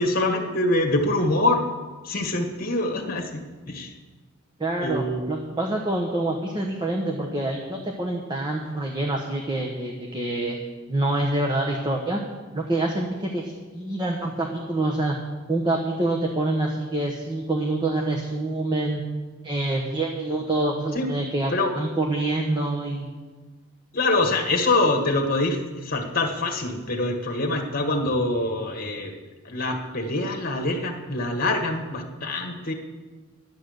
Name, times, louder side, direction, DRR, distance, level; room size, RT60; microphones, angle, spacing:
voice 1, 0.0-1.7 2.0-3.9 4.8-5.2 20.9-21.1 21.5-21.7 23.9-29.1 29.4-32.7, left 2 dB, 45° left, 5 dB, 1.6 m, -25 dB
voice 2, 4.6-10.6 10.9-12.2 12.5-15.2 15.5-19.0 19.4-23.1, right 2 dB, 20° right, 0 dB, 1.0 m, -26 dB
11.5 x 9.2 x 6.5 m, 1.3 s
head